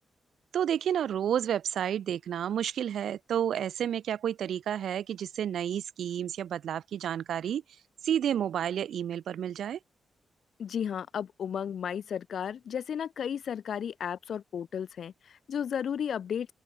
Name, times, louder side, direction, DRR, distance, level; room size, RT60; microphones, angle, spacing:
voice 1, 0.5-7.6 8.0-9.8, right 9 dB, 75° right, 2.4 m, -30 dB
voice 2, 10.6-16.5, left 8 dB, 60° left, 7.7 m, -34 dB
open air
wide cardioid pair, 165°, 0 cm